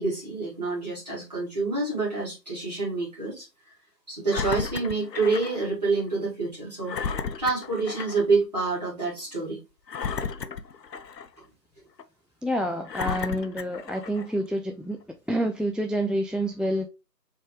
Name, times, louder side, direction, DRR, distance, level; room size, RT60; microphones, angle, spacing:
voice 1, 0.0-3.5 4.1-6.9 7.4-9.6, right 3 dB, 25° right, 2.1 m, -27 dB
Engine, 4.3-5.6 6.0-6.1 6.9-8.3 8.7-8.8 9.9-11.4 12.0-12.1 12.9-14.3 15.0-15.1, left 6 dB, 75° left, 0.6 m, -33 dB
voice 2, 12.4-15.0 15.3-16.9, equal, ahead, 0.3 m, -28 dB
4.1 x 3.5 x 3.1 m
figure-of-eight pair, 165°, 50 cm